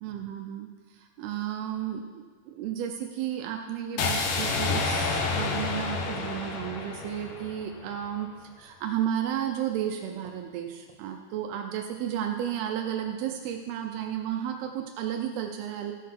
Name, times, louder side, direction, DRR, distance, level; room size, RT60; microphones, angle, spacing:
voice 1, 0.0-8.3 8.6-15.9, right 10 dB, 80° right, 4 dB, 2.6 m, -33 dB
sound 1, 4.0-8.0, left 4 dB, 70° left, 2.3 m, -29 dB
14.5 x 6.5 x 5.8 m, 1.4 s
omnidirectional pair, 4.6 m